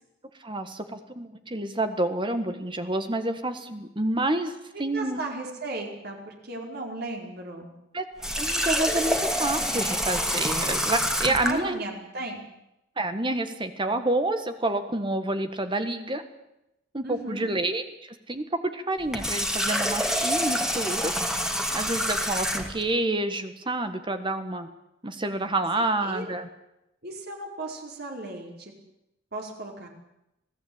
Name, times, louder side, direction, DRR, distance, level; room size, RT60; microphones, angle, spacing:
voice 1, 0.4-5.2 7.9-8.0 8.4-11.8 13.0-16.2 16.9-21.4 21.7-24.7 25.0-26.5, right 2 dB, 25° right, 8 dB, 1.6 m, -28 dB
voice 2, 4.9-7.7 11.2-12.4 17.0-17.5 25.8-26.3 27.0-28.7 29.3-29.9, right 2 dB, 55° right, 1 dB, 4.9 m, -36 dB
Water tap faucet, 8.2-11.6 19.0-22.8, equal, 5° right, 2.5 m, -27 dB
27.0 x 18.0 x 8.8 m, 0.88 s
head